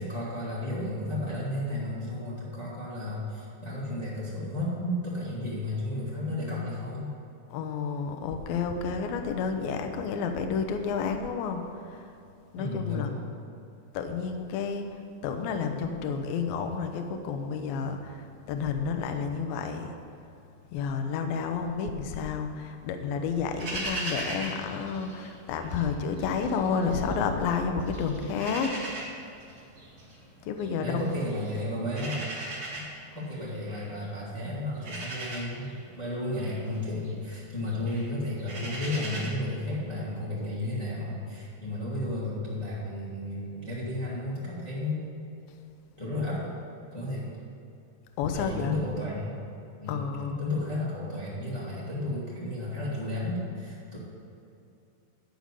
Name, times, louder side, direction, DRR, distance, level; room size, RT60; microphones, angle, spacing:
voice 1, 0.0-7.1 12.5-13.3 30.8-32.2 32.7-32.8 33.1-45.1 46.0-46.5 46.9-47.3 48.3-49.3 49.8-54.0, left 1 dB, 50° left, -9 dB, 0.4 m, -33 dB
voice 2, 7.5-11.6 12.5-13.1 13.9-14.9 15.2-18.2 18.5-19.9 20.7-28.7 30.5-31.0 48.2-48.7 49.9-50.4, left 5 dB, 80° left, 5 dB, 2.1 m, -30 dB
sound 1, 23.6-25.8 26.2-27.5 27.8-39.3, right 1 dB, 40° right, 2.2 m, -39 dB
11.5 x 5.3 x 8.2 m, 2.7 s
omnidirectional pair, 5.4 m